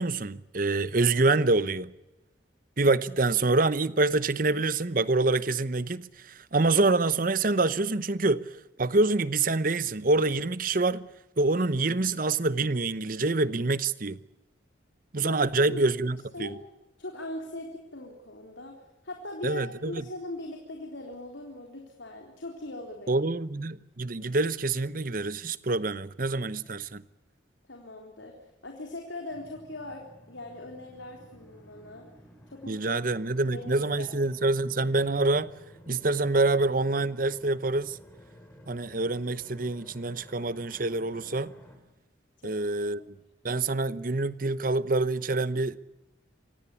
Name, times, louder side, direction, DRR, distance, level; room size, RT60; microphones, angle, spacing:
voice 1, 0.0-1.9 2.8-8.5 8.8-11.1 11.4-14.2 15.1-16.6 19.4-20.0 23.1-27.0 32.7-35.5 35.9-38.0 38.7-41.5 42.4-43.1 43.4-45.8, right 3 dB, 45° right, 0.9 m, -26 dB
voice 2, 17.0-23.3 27.7-28.4 28.6-32.1 32.5-33.0 33.4-34.1 42.4-42.9, left 1 dB, 75° left, 3.8 m, -40 dB
sound 1, 29.3-41.8, equal, 10° left, 5.2 m, -53 dB
26.5 x 18.0 x 8.5 m
head